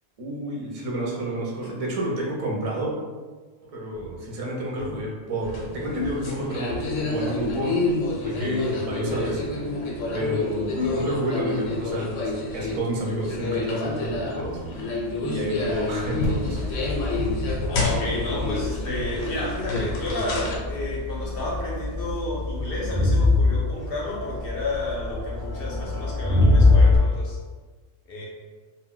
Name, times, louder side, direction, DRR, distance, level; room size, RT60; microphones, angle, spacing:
voice 1, 0.2-2.9 3.6-7.7 8.2-9.8 10.1-12.2 12.5-14.6 15.3-16.6, right 1 dB, 45° right, -3 dB, 0.5 m, -30 dB
sound 1, 3.9-4.2 4.8-5.0 5.6-7.6 8.2-8.5 9.1-11.0 11.6-11.9 12.5-12.8 13.4-13.6 14.0-16.8, right 1 dB, 10° right, 0.9 m, -41 dB
sound 2, 5.4-20.6, left 2 dB, 80° left, 1.0 m, -28 dB
Crowd, 16.2-27.0, left 2 dB, 20° left, 0.5 m, -24 dB
voice 2, 17.7-27.4 28.1-28.2, left 1 dB, 60° left, -4 dB, 0.7 m, -31 dB
2.2 x 2.1 x 3.7 m, 1.4 s
omnidirectional pair, 1.3 m